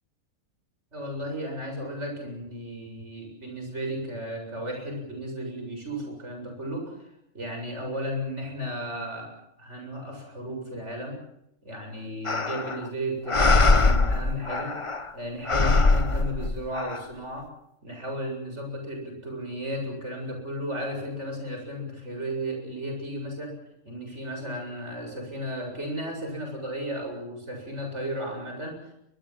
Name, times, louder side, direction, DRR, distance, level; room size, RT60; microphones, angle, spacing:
voice 1, 0.9-6.9 7.3-11.2 11.6-14.8 15.1-17.5 17.8-23.6 23.9-28.9, equal, 50° right, 3 dB, 8.0 m, -34 dB
sound 1, 12.2-12.9 13.3-15.1 15.5-17.0, left 3 dB, 25° left, 0.9 m, -22 dB
23.0 x 21.5 x 7.6 m, 0.77 s
omnidirectional pair, 1.6 m